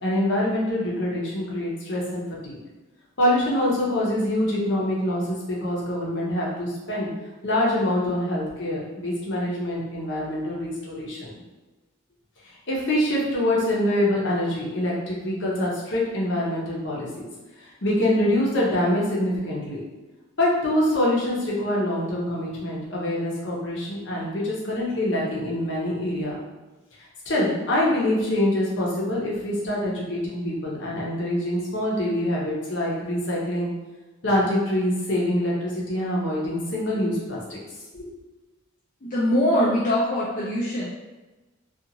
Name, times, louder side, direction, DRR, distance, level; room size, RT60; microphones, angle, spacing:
voice 1, 0.0-2.6 3.2-7.1 7.4-11.4 12.4-17.1 17.6-19.8 20.4-26.4 27.2-33.7 34.2-37.6 37.9-38.1, left 1 dB, 65° left, -5 dB, 0.8 m, -25 dB
voice 2, 39.0-40.9, equal, 40° left, -7 dB, 0.4 m, -22 dB
2.6 x 2.4 x 2.8 m, 1.1 s
head